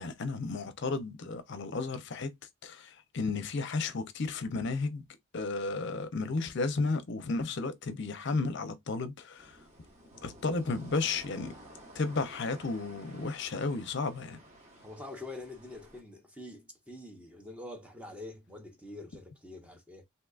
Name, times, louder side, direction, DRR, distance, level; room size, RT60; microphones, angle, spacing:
voice 1, 0.0-2.3 2.6-5.0 5.3-9.5 10.2-11.5 11.9-14.4, left 3 dB, 55° left, 0.6 m, -33 dB
sound 1, 9.4-16.0, right 1 dB, 35° right, 1.2 m, -53 dB
voice 2, 14.8-20.0, left 2 dB, 5° right, 0.6 m, -45 dB
3.7 x 2.7 x 2.3 m
head